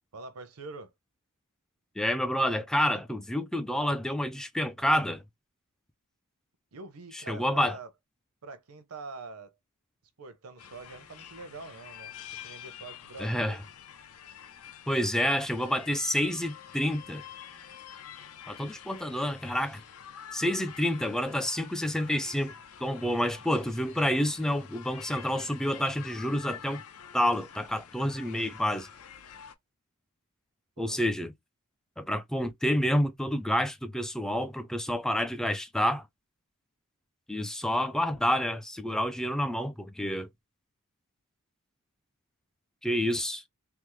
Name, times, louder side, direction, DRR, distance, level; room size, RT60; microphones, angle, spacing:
voice 1, 0.1-0.9 6.7-7.9 8.4-9.5 10.2-12.2 12.4-13.6 30.8-31.0, right 3 dB, 80° right, 0.7 m, -44 dB
voice 2, 2.0-5.2 7.1-7.8 13.2-13.6 14.9-17.2 18.5-19.8 20.3-22.5 22.8-26.8 27.1-28.9 30.8-31.3 32.0-36.0 37.3-40.3 42.8-43.4, equal, 5° left, 0.3 m, -28 dB
sound 1, 10.6-29.5, left 8 dB, 75° left, 0.5 m, -47 dB
3.4 x 2.0 x 3.0 m
head